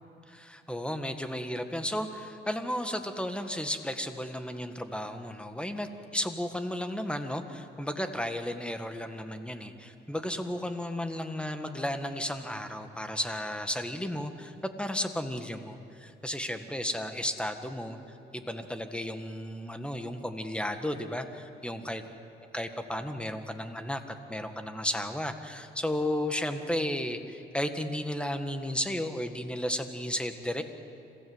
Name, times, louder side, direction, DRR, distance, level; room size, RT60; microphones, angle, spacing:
voice 1, 0.3-18.0 18.3-22.0 22.5-30.6, left 1 dB, 5° left, 7 dB, 1.7 m, -34 dB
26.5 x 16.0 x 8.1 m, 2.6 s
cardioid pair, 90°, 20 cm